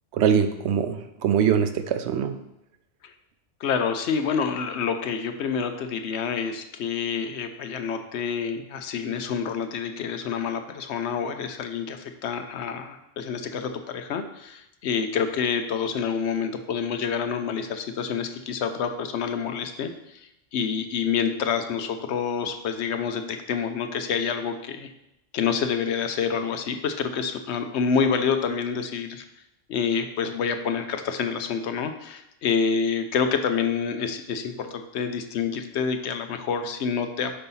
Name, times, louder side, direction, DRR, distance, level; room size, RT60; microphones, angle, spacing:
voice 1, 0.1-2.4, right 8 dB, 80° right, 9 dB, 0.9 m, -23 dB
voice 2, 3.6-19.9 20.5-24.9 25.3-29.2 29.7-37.4, left 6 dB, 85° left, 8 dB, 0.9 m, -27 dB
5.5 x 4.0 x 5.5 m, 0.84 s
omnidirectional pair, 1.1 m